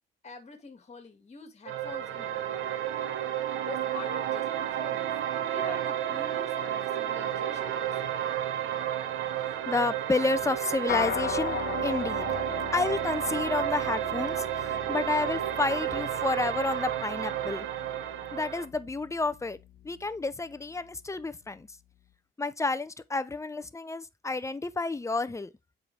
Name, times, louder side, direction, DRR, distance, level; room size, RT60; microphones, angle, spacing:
voice 1, 0.2-2.6 3.7-5.1 5.4-8.2, left 5 dB, 35° left, 2.0 m, -45 dB
sound 1, 1.7-18.6, right 11 dB, 85° right, 1.0 m, -31 dB
voice 2, 9.7-12.4 12.7-17.7 18.3-19.6 19.8-21.7 22.4-25.5, left 3 dB, 15° left, 0.6 m, -30 dB
sound 2, 10.9-20.4, left 10 dB, 55° left, 0.7 m, -39 dB
7.6 x 5.0 x 3.3 m
cardioid pair, 90°, 20 cm